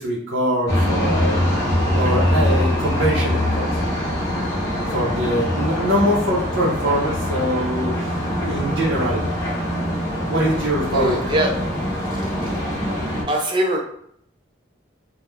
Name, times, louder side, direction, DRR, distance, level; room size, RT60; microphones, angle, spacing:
voice 1, 0.0-1.4 1.9-3.7 4.9-8.1 8.4-9.2 10.3-11.4, equal, 75° right, -4 dB, 0.6 m, -23 dB
sound 1, 0.7-13.2, equal, 15° left, 0.7 m, -23 dB
voice 2, 10.9-11.5 12.1-12.5 13.3-13.8, right 1 dB, 25° right, 0 dB, 0.4 m, -22 dB
2.3 x 2.1 x 3.0 m, 0.68 s
head